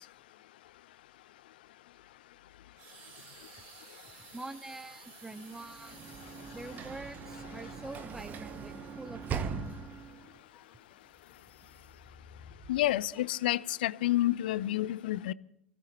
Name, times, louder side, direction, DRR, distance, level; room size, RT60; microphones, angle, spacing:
sound 1, 2.8-7.7 8.4-8.5, right 5 dB, 55° right, 6.0 m, -54 dB
voice 1, 4.2-6.1 6.5-9.6, right 2 dB, 5° right, 0.8 m, -45 dB
Sliding door / Slam, 5.6-10.3, right 6 dB, 30° right, 1.2 m, -40 dB
sound 2, 9.0-13.1, left 4 dB, 40° left, 3.6 m, -57 dB
voice 2, 12.7-15.3, left 15 dB, 60° left, 0.5 m, -29 dB
25.5 x 16.5 x 3.0 m
figure-of-eight pair, 85°, 6 cm